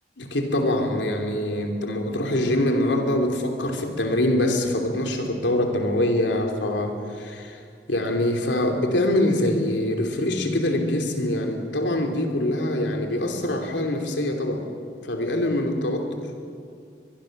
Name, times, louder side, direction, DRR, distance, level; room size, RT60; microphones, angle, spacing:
voice 1, 0.2-7.6 7.9-14.6 15.0-16.1, left 1 dB, 85° left, 3 dB, 3.0 m, -24 dB
23.0 x 22.5 x 6.6 m, 2.5 s
head